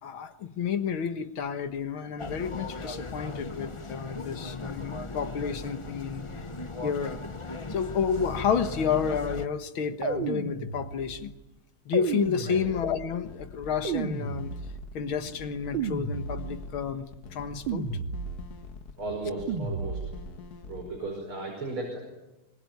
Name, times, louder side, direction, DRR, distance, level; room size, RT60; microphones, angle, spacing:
voice 1, 0.0-6.3 6.8-7.2 7.7-11.3 11.9-14.5 14.9-17.1 17.3-17.9, left 7 dB, 75° left, 10 dB, 2.3 m, -30 dB
sound 1, 2.2-9.5, left 3 dB, 30° left, 0.6 m, -38 dB
sound 2, 10.0-11.2 11.9-13.1 13.8-15.0 15.7-16.8 17.7-18.6 19.5-20.4, right 5 dB, 70° right, 2.4 m, -33 dB
sound 3, 12.1-21.0, left 6 dB, 50° left, 1.7 m, -46 dB
voice 2, 19.0-20.1 20.6-22.0, right 2 dB, 85° right, 1 dB, 6.4 m, -35 dB
25.0 x 22.5 x 9.3 m, 1.0 s
omnidirectional pair, 2.3 m